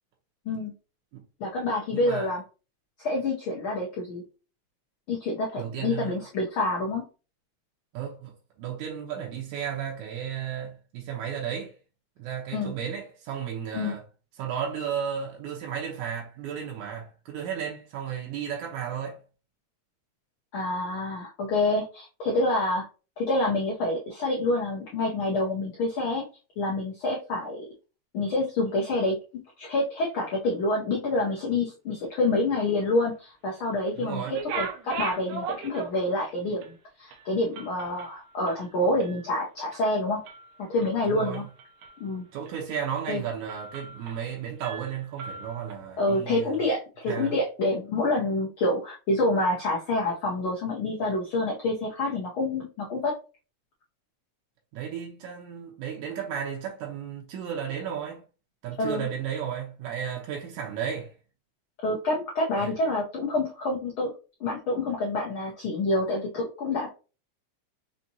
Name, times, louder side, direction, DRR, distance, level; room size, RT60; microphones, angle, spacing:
voice 1, 1.4-2.4 3.0-4.2 5.1-7.0 12.5-12.7 13.7-13.9 20.5-22.8 23.2-26.2 26.6-27.7 28.1-29.2 29.6-40.2 40.7-41.4 42.0-42.2 43.1-43.2 46.0-53.1 58.8-59.1 61.8-64.1 64.4-66.9, left 2 dB, 75° left, 1.2 m, -27 dB
voice 2, 1.9-2.3 5.6-6.2 7.9-11.7 12.2-14.0 14.4-19.2 34.0-34.4 41.1-41.5 42.3-46.5 47.1-47.4 54.7-58.2 58.6-61.1 62.6-62.7, right 8 dB, 90° right, 2.2 m, -34 dB
sound 1, 34.2-36.2 36.6-36.7 37.1-39.3 39.6-39.9 40.3-40.9 41.3-42.1 42.5-42.6 43.0-43.2 43.5-44.3 44.6-45.7, right 5 dB, 70° right, 1.8 m, -38 dB
5.6 x 2.7 x 2.7 m
omnidirectional pair, 3.3 m